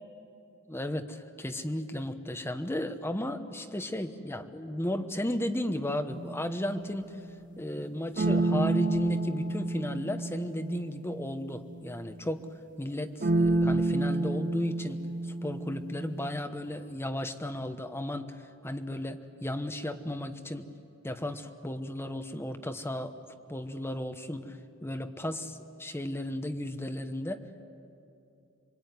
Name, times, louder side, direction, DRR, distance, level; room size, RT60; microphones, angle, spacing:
voice 1, 0.7-7.1 7.6-12.5 12.8-15.1 15.4-18.4 18.6-20.7 21.0-23.2 23.5-27.6, left 1 dB, 10° left, 7 dB, 1.2 m, -34 dB
sound 1, 6.1-7.1 8.2-12.2 13.2-16.4, right 2 dB, 40° right, 0.9 m, -30 dB
27.0 x 23.0 x 9.5 m, 2.6 s
head